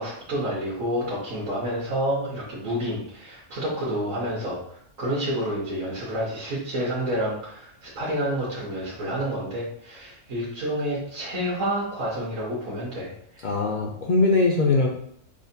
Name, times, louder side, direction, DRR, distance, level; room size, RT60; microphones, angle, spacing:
voice 1, 0.0-4.6 5.0-13.5, equal, 75° right, -7 dB, 1.4 m, -29 dB
voice 2, 13.4-14.9, left 3 dB, 65° left, -1 dB, 0.4 m, -21 dB
6.1 x 2.2 x 2.7 m, 0.66 s
omnidirectional pair, 1.4 m